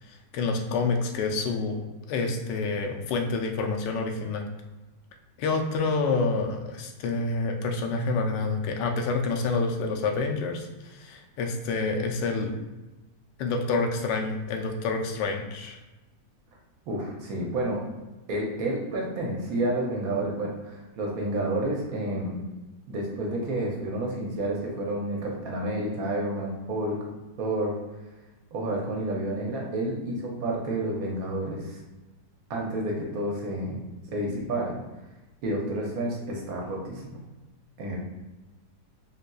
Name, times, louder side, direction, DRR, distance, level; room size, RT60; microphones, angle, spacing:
voice 1, 0.1-1.8 2.1-4.5 5.4-12.6 13.4-15.8, left 3 dB, 90° left, 3 dB, 1.2 m, -28 dB
voice 2, 16.9-17.9 18.3-22.4 22.9-27.1 27.4-27.8 28.5-31.8 32.5-33.8 34.1-34.8 35.4-37.2 37.8-38.0, right 1 dB, 65° right, -2 dB, 1.0 m, -30 dB
3.8 x 2.7 x 2.3 m, 1.1 s
omnidirectional pair, 1.8 m